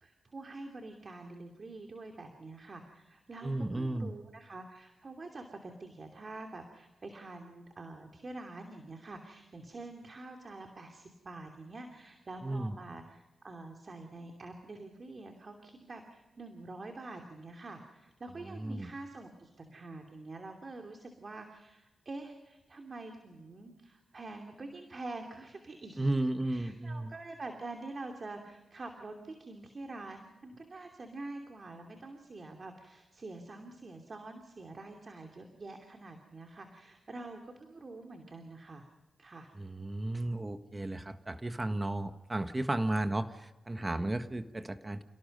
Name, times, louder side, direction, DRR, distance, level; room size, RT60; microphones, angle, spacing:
voice 1, 0.0-26.1 26.4-38.8 39.2-39.5, right 2 dB, 50° right, 4 dB, 2.7 m, -46 dB
voice 2, 3.4-4.1 12.4-12.7 18.5-18.9 26.0-27.1 39.5-45.0, right 1 dB, 25° right, 9 dB, 1.5 m, -34 dB
29.5 x 17.5 x 5.4 m, 1.1 s
cardioid pair, 55°, 0 cm